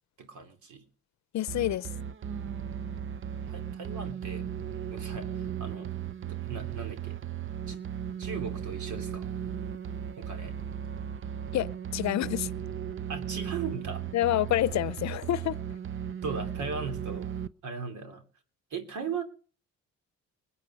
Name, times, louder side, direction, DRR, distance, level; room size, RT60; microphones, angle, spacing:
voice 1, 0.2-0.8 3.5-4.4 4.9-5.9 6.3-7.2 7.7-7.8 8.2-9.3 10.2-10.6 13.1-14.0 16.2-17.3 17.6-18.2 18.7-19.2, right 5 dB, 75° right, 3.1 m, -38 dB
voice 2, 1.3-1.9 11.5-12.5 14.1-15.6, left 13 dB, 65° left, 0.7 m, -28 dB
sound 1, 1.5-17.5, right 9 dB, 45° right, 0.7 m, -36 dB
21.5 x 8.2 x 6.4 m
cardioid pair, 90°, 30 cm